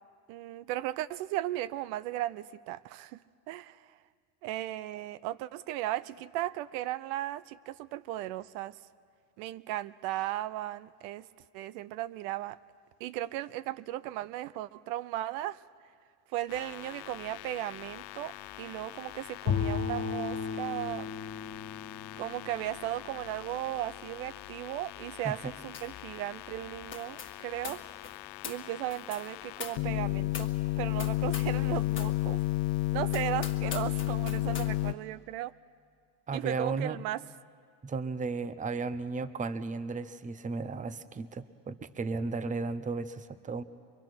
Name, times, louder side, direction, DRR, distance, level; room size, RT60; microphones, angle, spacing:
voice 1, 0.3-3.2 3.5-3.8 4.4-8.7 9.4-11.3 11.5-12.6 13.0-15.6 16.3-21.1 22.2-27.8 28.4-30.5 30.8-32.4 32.9-35.5 36.3-37.2, right 14 dB, 80° right, 0.7 m, -36 dB
sound 1, 16.5-34.9, left 17 dB, 60° left, 0.6 m, -35 dB
Bowed string instrument, 19.5-23.7, left 6 dB, 45° left, 1.9 m, -35 dB
sound 2, 25.7-26.0 26.3-31.6 31.9-32.2 32.6-32.7 33.1-34.7, left 6 dB, 25° left, 1.8 m, -44 dB
voice 2, 36.3-37.0 37.8-43.6, right 4 dB, 15° right, 0.7 m, -34 dB
23.5 x 23.5 x 6.1 m
cardioid pair, 120°, 45 cm